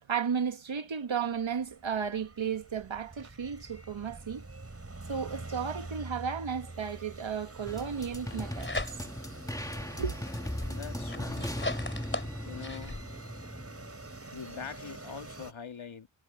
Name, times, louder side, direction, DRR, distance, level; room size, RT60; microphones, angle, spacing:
voice 1, 0.0-4.5 5.1-9.0 10.0-10.2, right 7 dB, 70° right, 1.8 m, -34 dB
sound 1, 1.3-15.5, right 2 dB, 30° right, 5.2 m, -46 dB
sound 2, 7.6-14.2, left 1 dB, 5° left, 2.1 m, -38 dB
sound 3, 8.1-9.3 9.8-13.0, left 2 dB, 25° left, 4.1 m, -38 dB
voice 2, 10.7-11.5 12.4-13.0 14.3-16.1, left 6 dB, 70° left, 2.2 m, -43 dB
wide cardioid pair, 100°, 48 cm